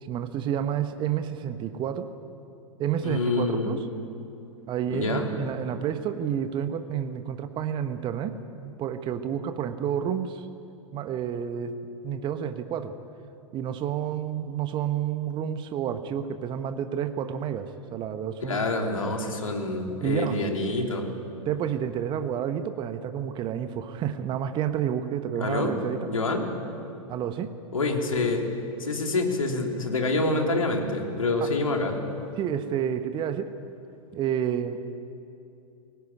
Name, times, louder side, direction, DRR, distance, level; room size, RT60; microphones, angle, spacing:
voice 1, 0.0-2.1 2.8-3.9 4.7-10.5 10.9-11.8 12.0-12.9 13.5-18.7 20.0-20.4 21.5-26.1 27.1-27.5 31.4-31.5 32.4-33.5 34.1-34.9, right 9 dB, 25° right, 9 dB, 1.1 m, -30 dB
voice 2, 3.0-3.8 4.9-5.3 18.4-21.1 25.4-25.8 26.1-26.5 27.7-28.5 28.8-32.0, left 2 dB, 75° left, 2 dB, 3.3 m, -27 dB
22.0 x 18.5 x 9.8 m, 2.7 s
figure-of-eight pair, 100°, 17 cm